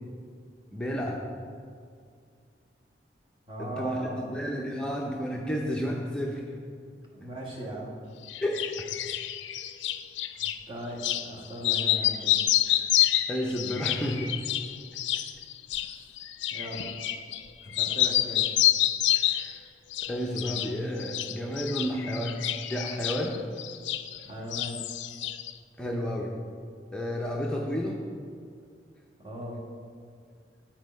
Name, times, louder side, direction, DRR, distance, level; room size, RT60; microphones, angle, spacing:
voice 1, 0.7-1.2 3.6-4.0 4.3-6.4 8.4-8.9 13.3-14.4 19.3-19.6 20.1-22.4 22.7-23.4 25.8-26.3 26.9-28.0, equal, 5° left, -2 dB, 0.5 m, -31 dB
voice 2, 3.5-4.3 7.1-7.9 10.4-12.4 15.8-15.9 16.5-16.8 17.6-18.4 24.2-24.8 29.2-29.6, right 1 dB, 30° right, -5 dB, 1.5 m, -38 dB
sound 1, 8.3-10.6 11.0-11.3 11.6-17.5 17.7-19.6 19.9-20.7 21.0-24.3 24.5-25.5, left 13 dB, 80° left, 0.4 m, -28 dB
8.3 x 4.5 x 5.3 m, 2.3 s
head